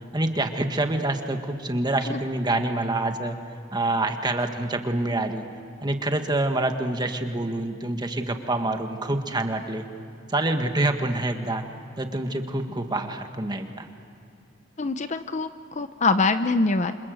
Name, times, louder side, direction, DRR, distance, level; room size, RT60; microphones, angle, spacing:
voice 1, 0.1-3.4 3.7-5.4 5.8-9.8 10.3-11.6 12.0-13.9, right 2 dB, 20° right, 5 dB, 1.7 m, -26 dB
voice 2, 14.8-17.0, left 3 dB, 35° left, 10 dB, 0.8 m, -24 dB
28.5 x 26.5 x 7.8 m, 2.6 s
head